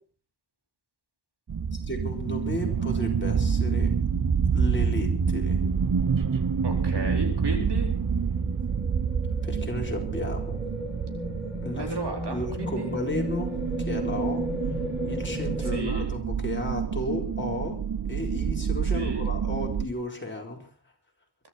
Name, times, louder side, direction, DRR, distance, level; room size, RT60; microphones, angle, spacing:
sound 1, 1.5-19.9, right 6 dB, 50° right, 1.0 m, -28 dB
voice 1, 1.7-3.9 4.5-5.6 9.4-10.6 11.6-11.9 12.3-13.5 13.8-14.4 15.1-17.8 18.1-20.6, left 1 dB, 25° left, 1 dB, 4.4 m, -34 dB
voice 2, 6.6-7.9 11.7-12.9 15.6-16.1 18.9-19.3, right 3 dB, 70° right, 3 dB, 4.4 m, -33 dB
sound 2, 7.5-15.8, left 1 dB, 5° right, 6.9 m, -36 dB
23.0 x 13.0 x 4.4 m, 0.40 s
wide cardioid pair, 95°, 42 cm